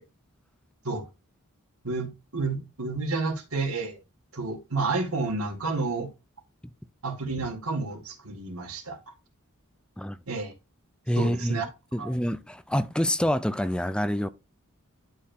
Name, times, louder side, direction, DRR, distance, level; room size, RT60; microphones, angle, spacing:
voice 1, 1.8-4.0 4.3-6.1 7.0-9.0 10.3-10.5 11.2-11.7 12.0-12.1, right 3 dB, 80° right, 2.2 m, -30 dB
voice 2, 11.1-11.6 11.9-14.3, equal, 5° left, 0.4 m, -26 dB
11.5 x 4.3 x 2.7 m
head